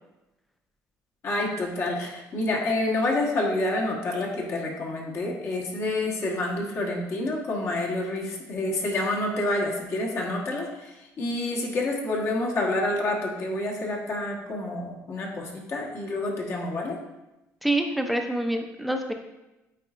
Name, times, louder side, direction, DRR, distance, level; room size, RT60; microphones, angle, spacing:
voice 1, 1.2-17.0, left 2 dB, 45° left, -1 dB, 1.3 m, -28 dB
voice 2, 17.6-19.1, right 1 dB, ahead, 4 dB, 0.6 m, -26 dB
9.1 x 4.1 x 2.5 m, 0.99 s
cardioid pair, 130°, 6 cm